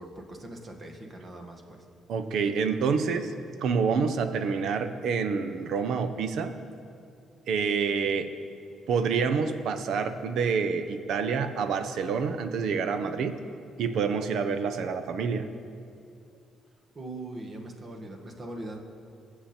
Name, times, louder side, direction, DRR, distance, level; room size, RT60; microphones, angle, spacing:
voice 1, 0.0-1.8 16.9-18.8, right 1 dB, 35° right, 3 dB, 1.7 m, -41 dB
voice 2, 2.1-3.3 3.6-6.5 7.5-8.3 8.9-13.4 13.8-15.5, right 5 dB, 75° right, 9 dB, 0.8 m, -27 dB
21.0 x 7.3 x 4.4 m, 2.5 s
cardioid pair, 90°, 0 cm